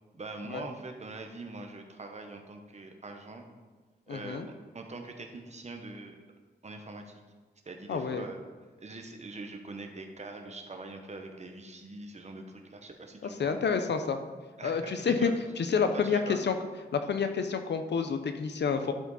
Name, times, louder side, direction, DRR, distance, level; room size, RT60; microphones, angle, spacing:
voice 1, 0.1-3.5 4.1-4.4 4.7-6.2 6.6-7.1 7.6-8.4 8.8-13.8 14.6-15.3 16.0-16.4, right 2 dB, 40° right, 4 dB, 1.0 m, -43 dB
voice 2, 4.1-4.5 7.9-8.3 13.2-14.2 14.6-15.3 15.6-16.5 16.9-18.9, left 6 dB, 85° left, 8 dB, 0.7 m, -29 dB
11.5 x 5.0 x 4.1 m, 1.4 s
wide cardioid pair, 110°, 17 cm